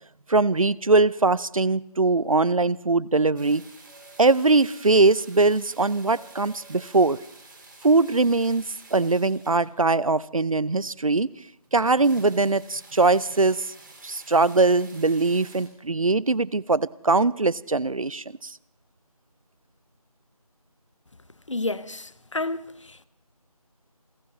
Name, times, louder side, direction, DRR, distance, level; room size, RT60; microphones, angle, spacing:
voice 1, 0.3-3.6 4.2-7.2 7.8-11.3 11.7-13.6 14.0-18.5, right 3 dB, 60° right, 0.5 m, -21 dB
sound 1, 3.4-10.1 10.7-10.8 11.1-11.2 11.4-11.5 11.6-15.7, right 2 dB, 35° right, 3.3 m, -50 dB
voice 2, 21.5-23.1, left 2 dB, 50° left, 0.8 m, -31 dB
28.5 x 16.0 x 3.1 m
figure-of-eight pair, 170°, 19 cm